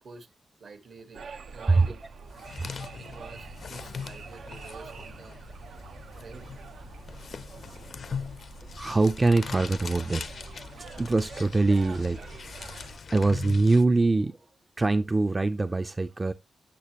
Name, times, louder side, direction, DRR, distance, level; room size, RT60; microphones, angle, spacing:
voice 1, 0.6-2.0 3.0-5.6 6.1-6.5 11.7-12.0, right 4 dB, 65° right, 1.2 m, -49 dB
sound 1, 1.1-13.0, right 5 dB, 90° right, 0.6 m, -45 dB
sound 2, 2.1-13.8, left 6 dB, 60° left, 0.4 m, -41 dB
voice 2, 8.7-10.3 10.8-14.4 14.8-16.3, right 3 dB, 20° right, 0.4 m, -24 dB
8.3 x 6.6 x 2.9 m
wide cardioid pair, 135°, 0 cm